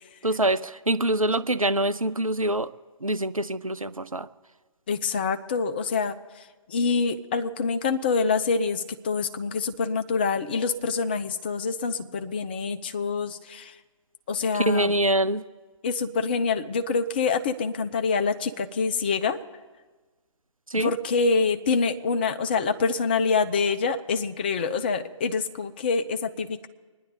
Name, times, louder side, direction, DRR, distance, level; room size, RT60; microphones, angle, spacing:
voice 1, 0.2-2.7 3.0-4.3 14.5-15.4 20.7-20.9, right 1 dB, 90° right, 17 dB, 0.7 m, -25 dB
voice 2, 4.9-13.8 14.3-14.9 15.8-19.4 20.8-26.7, left 4 dB, 20° left, 8 dB, 0.4 m, -26 dB
25.5 x 10.5 x 4.0 m, 1.3 s
figure-of-eight pair, 140°, 17 cm